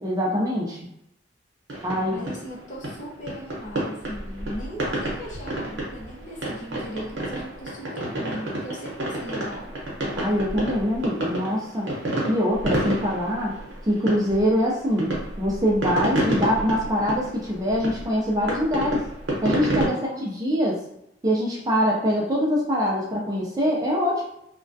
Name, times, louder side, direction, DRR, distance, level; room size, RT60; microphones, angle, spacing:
voice 1, 0.0-0.8 1.8-2.2 10.1-11.9 12.3-13.5 13.8-19.1 19.4-20.8 21.2-24.2, equal, 20° right, -3 dB, 0.4 m, -24 dB
sound 1, 1.7-19.9, right 1 dB, 85° right, 0.8 m, -30 dB
voice 2, 2.1-9.7 19.8-20.5, equal, 40° left, -3 dB, 0.6 m, -38 dB
2.3 x 2.1 x 2.5 m, 0.79 s
head